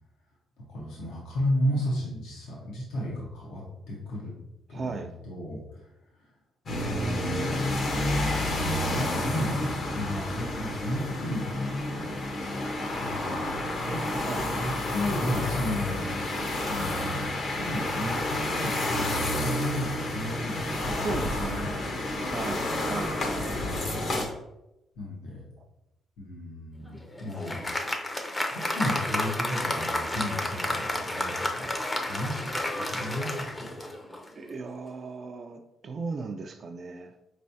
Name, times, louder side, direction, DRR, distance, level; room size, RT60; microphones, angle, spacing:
voice 1, 0.7-4.3 4.7-6.4 6.7-8.1 8.4-11.7 12.4-12.5 13.0-13.4 13.9-14.0 14.3-16.1 16.6-17.3 17.6-22.9 23.5-24.1 24.9-25.4 26.2-28.0 28.5-33.8, left 1 dB, 80° left, -5 dB, 1.1 m, -34 dB
voice 2, 4.7-5.1 14.3-14.4 21.0-21.6 22.3-23.2 23.9-24.0 34.4-37.1, right 4 dB, 45° right, 5 dB, 0.3 m, -36 dB
sound 1, 6.7-24.2, left 1 dB, 50° left, 0.9 m, -30 dB
Applause, 26.9-34.4, left 1 dB, 20° left, 0.6 m, -31 dB
4.6 x 3.1 x 2.7 m, 0.91 s
cardioid pair, 90°, 0 cm